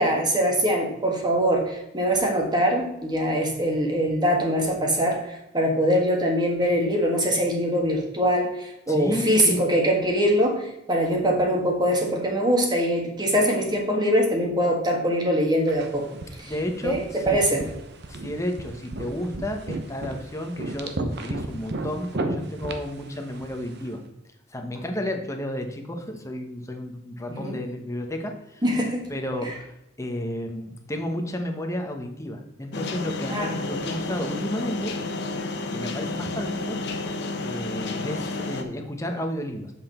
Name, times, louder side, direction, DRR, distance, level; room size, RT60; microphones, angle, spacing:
voice 1, 0.0-16.1 16.4-16.5 16.8-17.7 27.3-27.6 28.6-29.0 33.3-33.5, equal, 20° right, 0 dB, 1.7 m, -23 dB
voice 2, 8.9-9.6 16.4-17.0 17.3-17.7 18.1-24.0 24.5-28.6 29.1-29.7 30.0-34.9 35.7-36.8 37.4-39.7, left 1 dB, 15° left, 4 dB, 1.0 m, -32 dB
sound 1, 15.7-23.9, right 2 dB, 60° right, 0.9 m, -35 dB
sound 2, 32.7-38.6, left 3 dB, 60° left, 0.9 m, -31 dB
7.3 x 5.9 x 4.3 m, 0.88 s
head